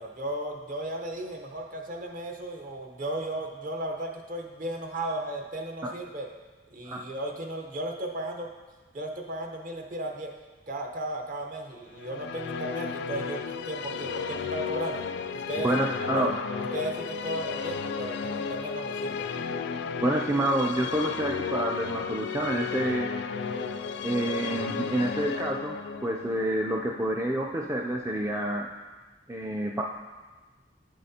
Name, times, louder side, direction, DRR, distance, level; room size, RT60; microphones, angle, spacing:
voice 1, 0.0-6.3 6.7-8.5 8.9-10.3 10.7-15.7 16.0-16.3 16.7-19.2, right 1 dB, 45° right, 3 dB, 0.8 m, -35 dB
sound 1, 11.9-28.0, left 6 dB, 65° left, 0.3 m, -34 dB
voice 2, 15.6-16.3 20.0-23.1 24.0-25.8 26.0-28.7 29.3-29.8, right 1 dB, 15° right, 0 dB, 0.3 m, -28 dB
8.8 x 7.5 x 2.8 m, 1.3 s
head